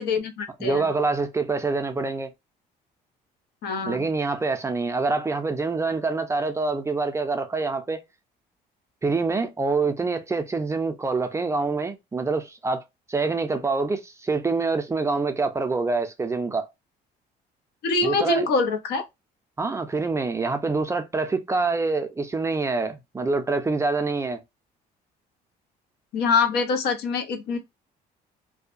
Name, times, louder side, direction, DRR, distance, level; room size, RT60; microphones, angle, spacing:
voice 1, 0.0-0.8 3.6-4.1 17.8-19.1 26.1-27.6, left 4 dB, 75° left, 0.6 m, -24 dB
voice 2, 0.6-2.3 3.9-8.0 9.0-16.7 18.0-18.4 19.6-24.4, right 3 dB, 15° right, 0.4 m, -26 dB
2.6 x 2.1 x 2.4 m
cardioid pair, 110°, 17 cm